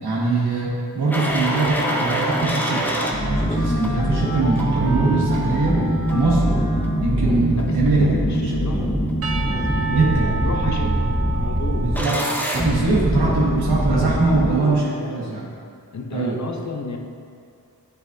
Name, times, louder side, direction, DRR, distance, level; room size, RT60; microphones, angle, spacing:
voice 1, 0.0-2.9 3.2-6.5 7.0-8.7 9.7-10.3 10.6-11.0 11.8-15.4 16.1-16.4, right 3 dB, 85° right, -6 dB, 1.4 m, -22 dB
sound 1, 1.1-14.5, equal, 5° left, 0.6 m, -23 dB
Wind instrument woodwind instrument, 2.2-8.0, equal, 85° left, 0.9 m, -33 dB
voice 2, 7.5-8.9 9.8-11.0 11.3-11.9 14.4-15.4 15.9-17.0, left 4 dB, 45° left, 3 dB, 0.7 m, -32 dB
Percussion / Church bell, 9.2-13.6, right 5 dB, 40° right, 0.5 m, -32 dB
10.0 x 4.0 x 2.7 m, 2.3 s
wide cardioid pair, 95°, 39 cm